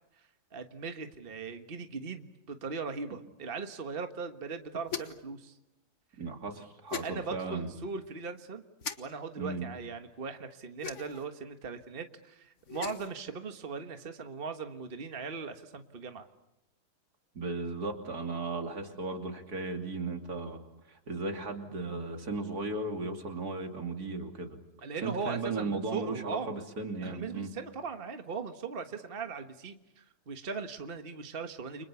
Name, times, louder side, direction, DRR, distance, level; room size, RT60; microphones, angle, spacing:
voice 1, 0.2-5.6 7.0-8.6 9.0-16.3 24.8-26.6 27.0-31.9, right 5 dB, 40° right, 7 dB, 1.6 m, -39 dB
sound 1, 4.9-5.3 6.9-7.1 8.8-9.0 10.8-11.3 12.6-13.1, left 7 dB, 50° left, 1.7 m, -38 dB
voice 2, 6.2-7.7 9.4-9.7 17.3-20.6 20.9-24.6 25.0-27.5, right 3 dB, 80° right, 4 dB, 3.3 m, -36 dB
30.0 x 25.0 x 7.0 m, 0.88 s
omnidirectional pair, 1.6 m